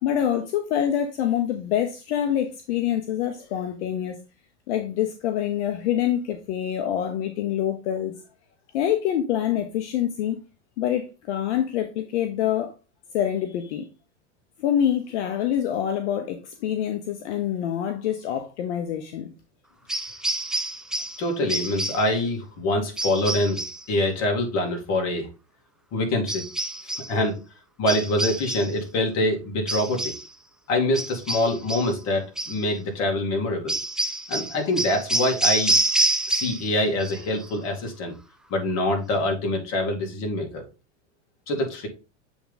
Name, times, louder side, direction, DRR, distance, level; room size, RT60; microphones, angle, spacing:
voice 1, 0.0-4.2 4.7-8.2 8.7-10.4 10.8-12.7 13.1-13.9 14.6-19.3, left 10 dB, 70° left, 1.0 m, -26 dB
sound 1, 19.9-21.2 21.5-22.1 23.0-23.8 26.3-27.1 27.9-28.8 29.7-30.3 30.9-32.0 32.4-32.6 33.7-36.7 37.0-37.5, right 2 dB, ahead, 0.3 m, -27 dB
voice 2, 21.2-23.6 23.9-25.3 25.9-26.4 26.8-27.4 27.8-30.1 30.7-33.8 34.3-35.7 36.3-38.1 38.5-40.6 41.5-41.9, left 1 dB, 45° left, 2.5 m, -25 dB
7.7 x 3.6 x 4.0 m
hypercardioid pair, 115°, 36 cm